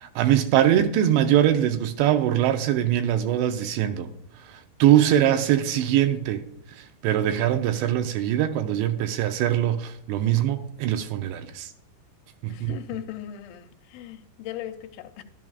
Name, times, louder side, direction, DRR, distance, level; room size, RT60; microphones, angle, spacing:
voice 1, 0.0-4.1 4.8-6.4 7.0-11.7 12.4-12.8, right 11 dB, 85° right, 2.8 m, -22 dB
voice 2, 12.5-15.2, left 12 dB, 85° left, 3.0 m, -38 dB
12.5 x 11.0 x 2.4 m
omnidirectional pair, 5.1 m